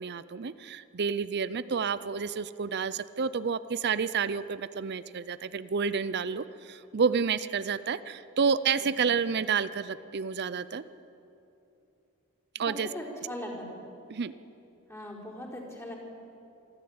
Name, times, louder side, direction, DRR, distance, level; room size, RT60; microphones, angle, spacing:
voice 1, 0.0-10.8 12.5-12.9 14.1-14.3, right 6 dB, 50° right, 15 dB, 0.5 m, -30 dB
voice 2, 8.8-9.1 12.7-13.6 14.9-15.9, left 1 dB, 15° left, -4 dB, 4.4 m, -40 dB
25.5 x 14.0 x 8.7 m, 2.8 s
head